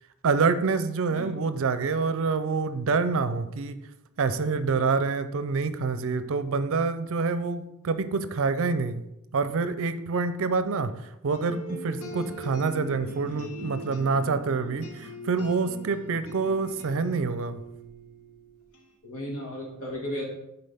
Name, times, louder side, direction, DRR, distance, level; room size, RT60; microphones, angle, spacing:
voice 1, 0.2-3.8 4.2-9.0 9.3-17.6, right 4 dB, 65° right, 12 dB, 0.5 m, -27 dB
sound 1, 11.3-18.9, right 1 dB, 90° left, 1.2 m, -41 dB
voice 2, 19.0-20.2, left 1 dB, 70° left, -2 dB, 2.0 m, -34 dB
9.6 x 4.0 x 3.5 m, 0.89 s
head